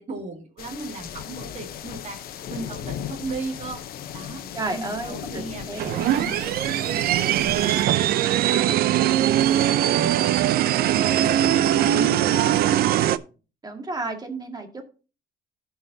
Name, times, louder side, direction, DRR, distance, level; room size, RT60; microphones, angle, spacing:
voice 1, 0.0-4.4 4.7-6.3 6.8-11.5 11.8-13.1, right 3 dB, 40° right, 1 dB, 2.3 m, -37 dB
sound 1, 0.6-7.9, left 10 dB, 65° left, 0.8 m, -37 dB
voice 2, 4.5-6.0 13.6-14.8, right 3 dB, 25° right, 4 dB, 2.0 m, -32 dB
sound 2, 5.8-13.2, right 12 dB, 65° right, 0.5 m, -21 dB
16.5 x 5.7 x 2.7 m, 0.35 s
cardioid pair, 110°, 17 cm